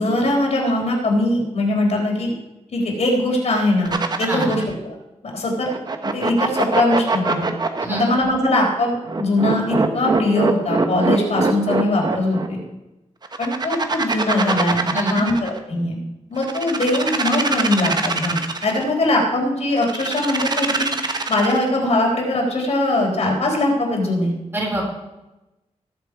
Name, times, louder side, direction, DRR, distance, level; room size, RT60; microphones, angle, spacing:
voice 1, 0.0-2.3 2.7-4.9 5.3-5.7 6.1-7.5 7.9-12.6 13.4-16.0 16.3-20.9 21.3-24.3, left 1 dB, 70° left, -1 dB, 4.0 m, -21 dB
sound 1, 3.8-4.7 5.7-8.2 9.1-12.5 13.2-15.6 16.4-18.8 19.8-21.7, right 3 dB, 35° right, 1.1 m, -23 dB
voice 2, 7.8-8.1 14.9-15.2 24.5-24.8, right 1 dB, 20° right, -2 dB, 4.2 m, -24 dB
19.5 x 7.2 x 4.8 m, 0.99 s
wide cardioid pair, 150°, 12 cm